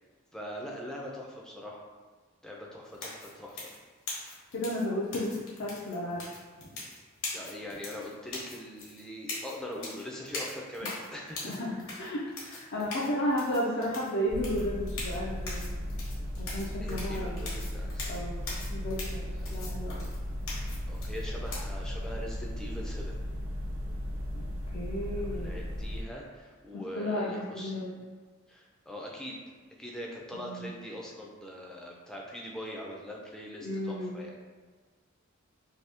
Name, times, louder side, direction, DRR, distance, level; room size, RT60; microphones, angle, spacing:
voice 1, 0.3-1.8 2.4-3.7 7.3-11.4 16.8-18.1 19.4-19.5 20.9-23.2 25.1-28.0 28.5-29.4 29.8-34.4, equal, 5° left, -2 dB, 0.4 m, -42 dB
sound 1, 2.9-21.6, left 2 dB, 75° left, 1.0 m, -42 dB
voice 2, 4.5-6.3 10.8-10.9 11.4-15.6 16.4-17.5 18.1-20.1 24.3-24.4 24.7-25.5 26.7-27.9 30.4-30.7 33.6-34.1, left 1 dB, 60° left, -6 dB, 0.4 m, -33 dB
sound 2, 14.3-26.0, equal, 70° right, 0.5 m, -36 dB
2.8 x 2.7 x 3.4 m, 1.5 s
head